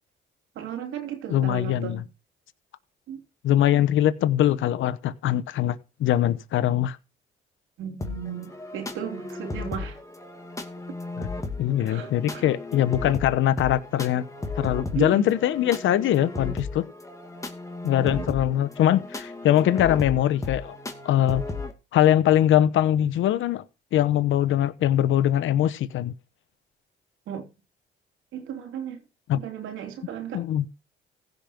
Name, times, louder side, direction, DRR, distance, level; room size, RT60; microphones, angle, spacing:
voice 1, 0.5-2.0 3.1-3.2 3.7-3.8 7.8-10.0 11.8-12.4 14.9-15.4 18.0-18.2 27.3-27.5 28.3-29.0 29.3-30.4, right 9 dB, 85° right, 3.4 m, -35 dB
voice 2, 1.3-2.0 3.4-7.0 11.2-11.3 11.6-14.2 14.6-16.9 17.8-20.7 21.0-21.4 21.9-23.6 23.9-26.1 29.3-29.4 30.3-30.6, left 11 dB, 80° left, 1.0 m, -22 dB
sound 1, 8.0-21.7, left 3 dB, 15° left, 2.4 m, -35 dB
16.0 x 5.3 x 6.0 m
cardioid pair, 90°, 20 cm